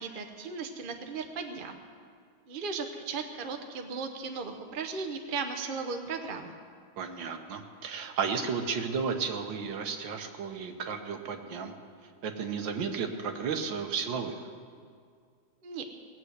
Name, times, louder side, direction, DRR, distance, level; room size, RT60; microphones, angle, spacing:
voice 1, 0.0-1.8 2.5-6.6 15.6-15.8, right 4 dB, 40° right, 5 dB, 0.7 m, -36 dB
voice 2, 7.0-11.7 12.2-14.4, right 6 dB, 65° right, 5 dB, 1.7 m, -33 dB
19.5 x 7.6 x 8.0 m, 2.1 s
omnidirectional pair, 2.3 m